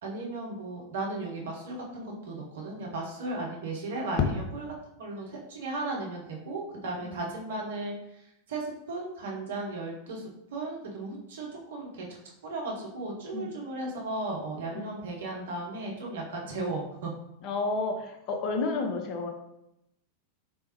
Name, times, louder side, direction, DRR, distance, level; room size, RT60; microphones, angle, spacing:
voice 1, 0.0-4.6 5.0-7.9 8.5-10.2 10.5-12.1 12.4-17.1, right 2 dB, 60° right, -1 dB, 0.9 m, -35 dB
voice 2, 17.4-19.3, left 3 dB, 40° left, 3 dB, 0.6 m, -31 dB
3.5 x 3.4 x 3.0 m, 0.82 s
figure-of-eight pair, 90°, 0 cm